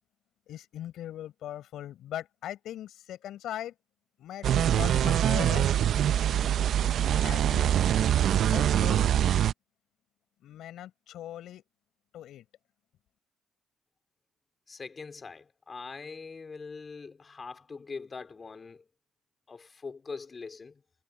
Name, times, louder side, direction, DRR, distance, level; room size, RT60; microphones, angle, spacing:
voice 1, 0.5-3.7 4.2-5.7 7.0-8.1 8.5-9.1 10.4-11.6 12.1-12.5, left 12 dB, 80° left, 5.3 m, -40 dB
sound 1, 4.4-9.5, right 10 dB, 70° right, 0.5 m, -24 dB
voice 2, 14.7-18.8 19.5-20.8, left 4 dB, 35° left, 3.8 m, -42 dB
cardioid pair, 90°, 0 cm